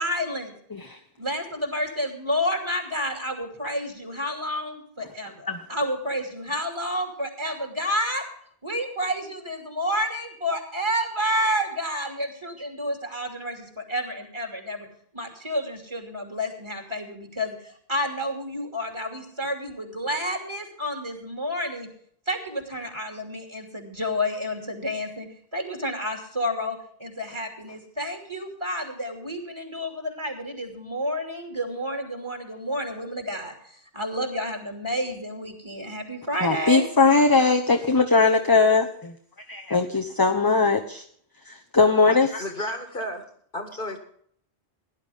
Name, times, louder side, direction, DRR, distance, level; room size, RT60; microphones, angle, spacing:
voice 1, 0.0-0.5 1.2-8.3 8.6-14.9 15.1-21.9 22.3-36.9, equal, 25° right, 3 dB, 2.9 m, -30 dB
voice 2, 36.4-39.1 39.5-41.0 41.5-42.4, left 4 dB, 20° left, 3 dB, 0.9 m, -20 dB
voice 3, 42.4-43.3 43.5-44.0, left 1 dB, 55° left, 6 dB, 2.0 m, -32 dB
17.5 x 11.0 x 3.6 m, 0.62 s
omnidirectional pair, 1.1 m